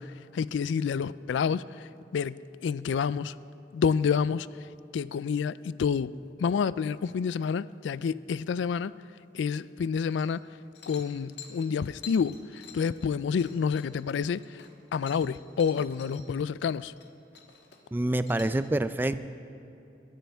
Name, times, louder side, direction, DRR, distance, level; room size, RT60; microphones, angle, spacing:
voice 1, 0.0-3.3 3.7-4.5 4.9-6.1 6.4-8.9 9.3-10.5 10.9-14.6 14.9-16.9, left 6 dB, 90° left, 0.3 m, -29 dB
sound 1, 10.0-10.5 10.7-16.2 16.6-17.1 17.3-18.6, left 7 dB, 70° left, 1.5 m, -49 dB
voice 2, 17.9-19.2, right 1 dB, 10° right, 0.3 m, -27 dB
22.0 x 13.5 x 3.5 m
head